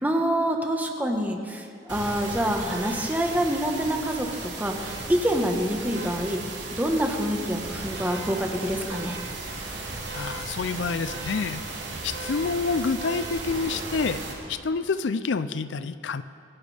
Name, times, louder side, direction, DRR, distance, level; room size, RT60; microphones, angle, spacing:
voice 1, 0.0-6.5 6.7-9.2, equal, 10° right, 2 dB, 1.2 m, -26 dB
sound 1, 1.9-14.3, right 3 dB, 80° right, 3.3 m, -35 dB
voice 2, 10.1-11.6 12.0-14.2 14.5-16.2, left 4 dB, 80° left, 13 dB, 0.5 m, -28 dB
24.5 x 11.5 x 3.4 m, 2.4 s
head